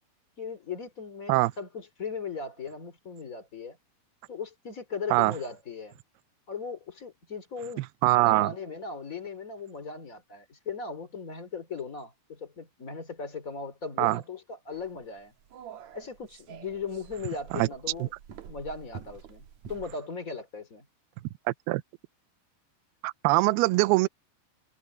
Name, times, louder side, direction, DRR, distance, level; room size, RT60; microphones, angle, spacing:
voice 1, 0.4-3.8 4.3-6.0 6.5-7.8 8.2-15.3 15.9-18.1 18.5-20.9, left 5 dB, 25° left, 2.4 m, -38 dB
voice 2, 7.8-8.5 14.0-14.2 17.5-17.7 21.5-21.8 23.0-24.1, right 20 dB, 80° right, 2.3 m, -23 dB
sound 1, 14.7-19.9, right 8 dB, 60° right, 2.0 m, -48 dB
omnidirectional pair, 5.0 m